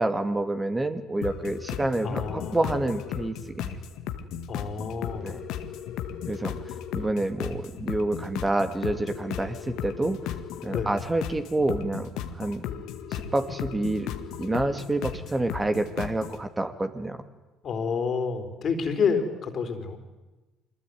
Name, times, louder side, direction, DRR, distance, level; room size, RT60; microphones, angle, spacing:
voice 1, 0.0-3.8 5.2-5.4 6.3-6.5 6.9-10.2 10.6-12.1 12.3-12.7 13.1-14.1 14.4-17.2, right 2 dB, 20° right, 8 dB, 2.4 m, -28 dB
sound 1, 1.2-16.4, left 9 dB, 70° left, 1.8 m, -35 dB
voice 2, 2.0-2.7 4.5-5.4 10.7-10.9 17.6-20.0, left 5 dB, 50° left, 8 dB, 4.1 m, -29 dB
24.5 x 20.5 x 9.6 m, 1.1 s
hypercardioid pair, 60°, 0 cm